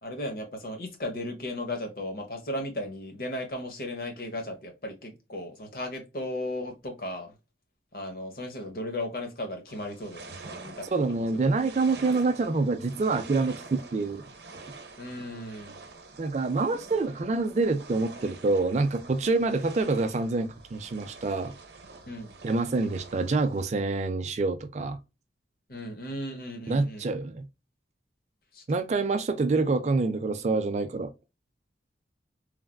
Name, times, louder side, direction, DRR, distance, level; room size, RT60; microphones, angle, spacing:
voice 1, 0.0-7.3 7.9-10.9 11.2-11.4 15.0-15.8 22.1-22.3 25.7-27.1 28.5-28.6, left 1 dB, 55° left, 0.9 m, -36 dB
sound 1, 9.7-23.6, right 3 dB, 70° right, 0.7 m, -47 dB
voice 2, 10.9-14.2 16.2-21.5 22.4-25.0 26.7-27.5 28.7-31.1, right 3 dB, 40° right, 0.3 m, -26 dB
3.2 x 2.4 x 2.2 m
head